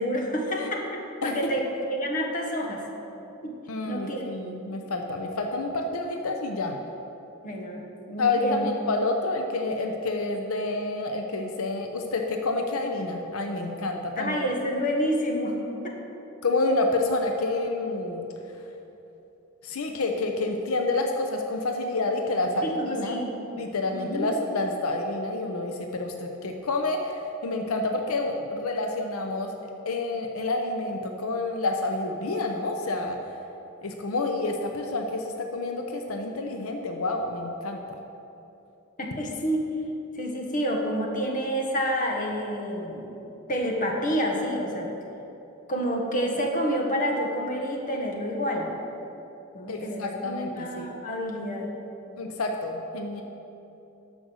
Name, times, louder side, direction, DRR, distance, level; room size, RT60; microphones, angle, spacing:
voice 1, 0.0-2.8 3.4-3.6 3.9-4.3 7.4-7.8 8.1-8.7 14.2-15.6 15.8-15.9 22.6-23.3 23.9-24.4 39.0-39.7 40.1-43.2 43.5-44.9 45.7-48.7 49.5-51.7, equal, 35° left, 0 dB, 1.3 m, -28 dB
voice 2, 3.7-6.8 8.2-14.4 16.4-18.3 19.6-23.2 23.6-29.6 29.9-33.2 33.8-37.8 49.7-50.9 52.2-53.2, left 2 dB, 80° left, 3 dB, 0.7 m, -28 dB
12.5 x 5.3 x 6.3 m, 2.9 s
head